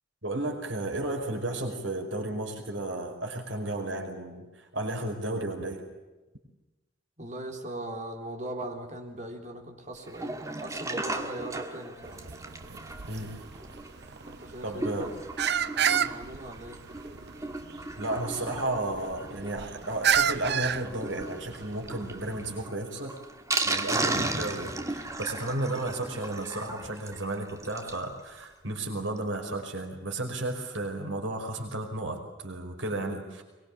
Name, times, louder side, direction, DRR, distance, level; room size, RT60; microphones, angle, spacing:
voice 1, 0.2-5.8 13.1-13.3 14.6-15.1 18.0-23.2 23.6-33.4, right 2 dB, 80° right, 3 dB, 5.1 m, -33 dB
voice 2, 7.2-12.2 14.2-15.2 15.8-16.8, right 1 dB, 40° right, 3 dB, 4.1 m, -39 dB
Sink (filling or washing), 10.0-28.1 28.4-28.5 28.7-28.8 29.2-29.3, right 2 dB, 15° right, 1.9 m, -36 dB
sound 1, 12.0-22.7, right 8 dB, 60° right, 0.8 m, -32 dB
23.5 x 22.5 x 8.6 m, 1.1 s
head